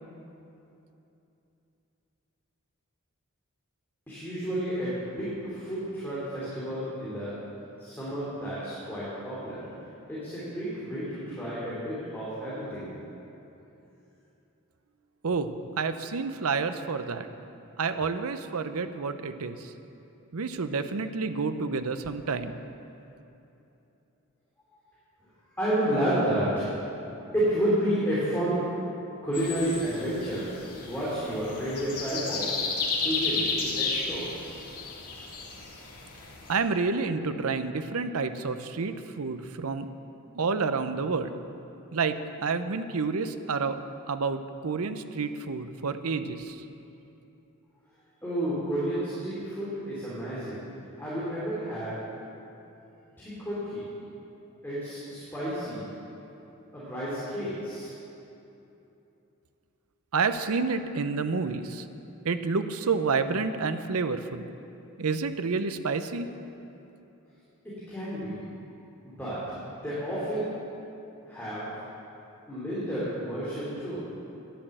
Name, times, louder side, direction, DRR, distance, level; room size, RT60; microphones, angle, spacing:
voice 1, 4.1-7.3 7.8-9.6 10.1-12.9 25.6-26.8 27.3-28.6 29.2-30.5 30.8-32.5 33.0-34.2 48.2-50.6 51.0-52.0 53.2-53.9 54.6-55.9 56.7-57.9 67.9-68.4 69.0-69.4 69.8-70.5 71.3-71.8 72.5-74.1, right 1 dB, 10° left, -10 dB, 2.9 m, -31 dB
voice 2, 15.2-17.3 17.8-19.7 20.3-22.6 36.5-39.9 40.3-41.3 41.9-43.8 44.1-46.6 60.1-61.9 62.2-64.4 65.0-66.3, right 4 dB, 75° right, 10 dB, 0.7 m, -29 dB
sound 1, 29.3-36.6, left 4 dB, 85° left, 2.2 m, -33 dB
10.5 x 10.0 x 7.7 m, 2.9 s
head